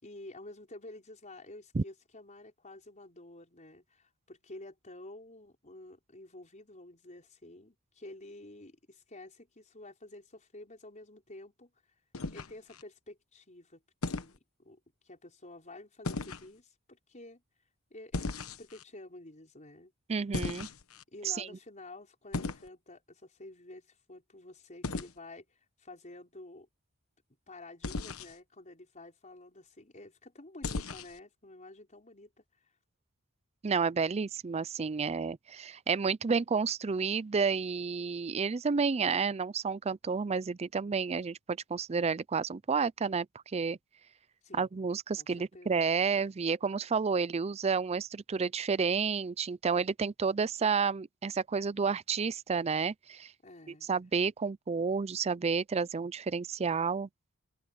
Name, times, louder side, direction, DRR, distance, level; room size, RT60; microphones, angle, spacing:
voice 1, 0.0-11.7 12.3-13.8 14.1-14.8 15.0-17.4 17.9-19.9 21.1-26.7 27.5-32.4 44.4-44.7 45.2-45.7 53.4-53.9, left 2 dB, 35° left, 5.1 m, -50 dB
sound 1, 12.1-12.8 14.0-14.4 16.0-16.5 18.1-18.8 20.3-21.0 22.3-22.7 24.8-25.1 27.8-28.3 30.6-31.2, left 3 dB, 70° left, 1.2 m, -36 dB
voice 2, 20.1-20.7 21.2-21.5 33.6-43.3 43.5-43.8 44.6-53.3 53.9-57.1, right 5 dB, 30° right, 0.4 m, -30 dB
open air
head